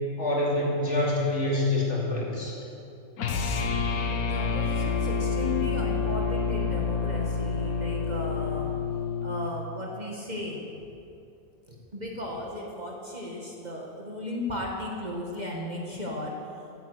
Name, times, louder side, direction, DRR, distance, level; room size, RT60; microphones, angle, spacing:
voice 1, 0.2-2.6, left 2 dB, 50° left, -3 dB, 2.9 m, -26 dB
sound 1, 3.2-9.6, left 5 dB, 80° left, 1.4 m, -28 dB
voice 2, 3.6-8.7 9.2-10.9 11.7-16.3, left 1 dB, 30° right, -2 dB, 1.6 m, -36 dB
16.0 x 8.6 x 6.5 m, 2.6 s
omnidirectional pair, 1.5 m